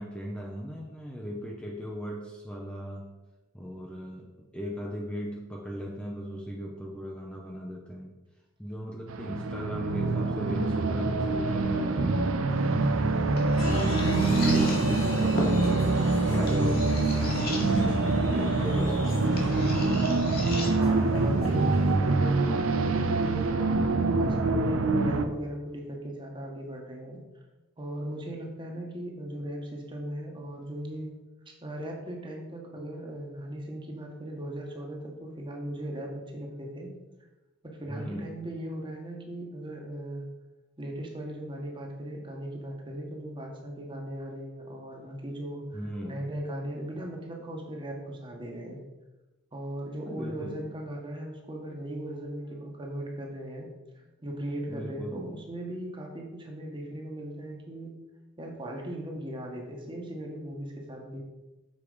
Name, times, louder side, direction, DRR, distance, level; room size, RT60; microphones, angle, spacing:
voice 1, 0.0-3.1 3.5-4.3 4.5-8.1 8.6-13.2 13.6-17.0 17.3-20.2 21.2-21.8 37.9-38.4 45.7-46.2 50.0-50.7 54.7-55.4, equal, 5° left, -2 dB, 0.7 m, -38 dB
sound 1, 9.1-25.2, right 3 dB, 80° right, 0.6 m, -25 dB
sound 2, 12.5-23.5, left 1 dB, 45° left, 1.8 m, -40 dB
Applause, 13.5-21.9, left 1 dB, 70° left, 2.7 m, -37 dB
voice 2, 20.7-23.7 24.2-27.2 27.8-31.1 31.6-37.0 37.6-40.2 40.8-45.6 46.0-48.8 49.5-53.7 53.9-57.9 58.4-61.2, right 1 dB, 25° right, 0 dB, 1.4 m, -38 dB
7.1 x 5.0 x 5.0 m, 1.1 s
head